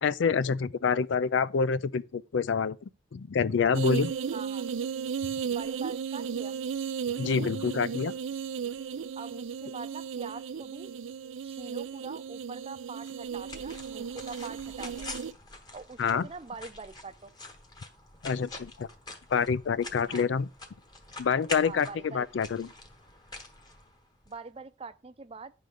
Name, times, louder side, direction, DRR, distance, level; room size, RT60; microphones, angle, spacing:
voice 1, 0.0-2.8 3.1-4.1 7.2-8.1 16.0-16.3 18.2-18.9 19.3-20.5 21.2-22.7, left 6 dB, 75° left, 0.4 m, -27 dB
sound 1, 3.7-15.3, right 7 dB, 90° right, 0.4 m, -35 dB
voice 2, 4.3-4.7 5.5-6.5 9.2-10.9 11.4-15.2 15.7-17.3 20.1-20.3 21.6-22.2 24.3-25.5, right 4 dB, 30° right, 0.5 m, -44 dB
sound 2, 13.0-24.4, left 2 dB, 20° left, 1.1 m, -45 dB
9.4 x 3.9 x 6.4 m
head